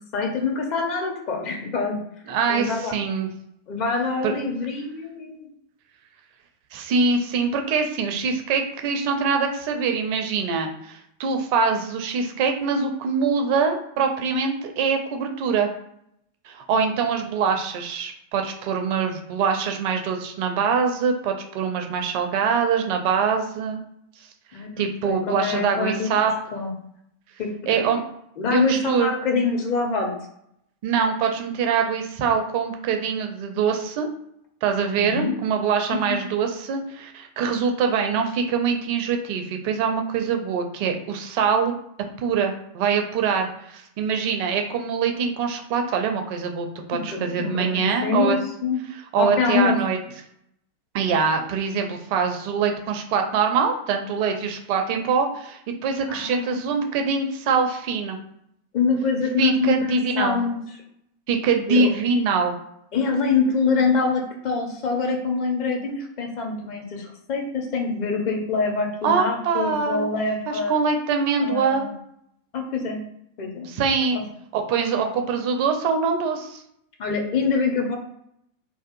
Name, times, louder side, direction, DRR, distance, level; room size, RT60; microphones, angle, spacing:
voice 1, 0.1-2.0 2.5-2.9 3.7-5.5 16.7-16.9 24.5-26.1 26.5-26.7 27.4-27.9 28.4-30.1 34.9-35.4 36.1-36.2 46.9-48.4 48.6-48.8 49.1-49.8 56.1-56.7 58.7-60.6 61.7-61.9 62.9-70.8 71.4-71.9 72.5-73.0 73.4-73.7 74.1-74.2 77.0-78.0, left 4 dB, 40° left, 1 dB, 0.7 m, -25 dB
voice 2, 2.3-3.3 4.2-4.3 6.7-15.7 16.4-23.8 24.8-26.3 27.7-28.0 28.5-29.1 30.8-34.1 34.6-41.7 42.2-48.4 48.9-50.0 50.9-58.2 59.4-60.4 61.3-62.5 69.0-70.1 70.5-71.9 73.6-74.2 74.5-76.6, right 5 dB, 45° right, 4 dB, 0.4 m, -24 dB
2.7 x 2.3 x 2.5 m, 0.73 s
figure-of-eight pair, 90°, 0 cm